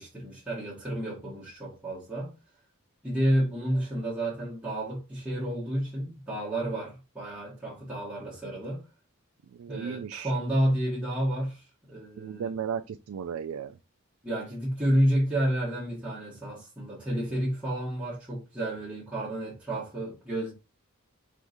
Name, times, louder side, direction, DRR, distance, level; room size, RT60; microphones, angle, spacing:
voice 1, 0.0-2.3 3.0-8.8 9.7-12.5 14.2-20.5, right 1 dB, 5° right, 1.6 m, -30 dB
voice 2, 9.5-10.3 12.2-13.8, right 7 dB, 75° right, 0.3 m, -35 dB
4.6 x 3.6 x 2.6 m
head